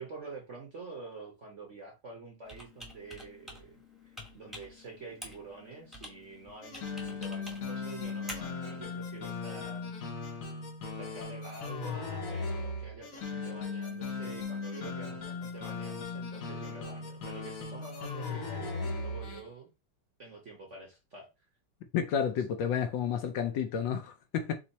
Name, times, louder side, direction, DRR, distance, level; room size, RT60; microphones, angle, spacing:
voice 1, 0.0-9.9 11.0-19.7 20.2-21.3, right 3 dB, 50° right, 1.0 m, -47 dB
Computer keyboard, 2.4-9.1, left 1 dB, ahead, 0.9 m, -49 dB
sound 1, 6.6-19.5, left 4 dB, 55° left, 1.0 m, -38 dB
voice 2, 21.9-24.5, left 8 dB, 70° left, 1.2 m, -31 dB
4.4 x 2.7 x 4.1 m
omnidirectional pair, 2.4 m